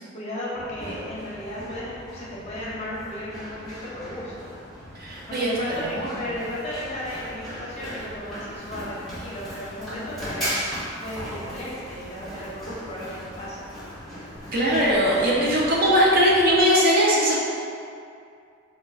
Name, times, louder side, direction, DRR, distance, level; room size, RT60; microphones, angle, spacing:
voice 1, 0.1-4.5 5.3-10.6 11.0-13.7, left 1 dB, 30° left, -7 dB, 0.6 m, -35 dB
Run, 0.6-16.6, equal, ahead, 0.8 m, -37 dB
voice 2, 5.0-5.5 5.8-6.2 14.5-17.4, equal, 45° right, -5 dB, 0.6 m, -20 dB
4.2 x 2.2 x 2.4 m, 2.4 s
head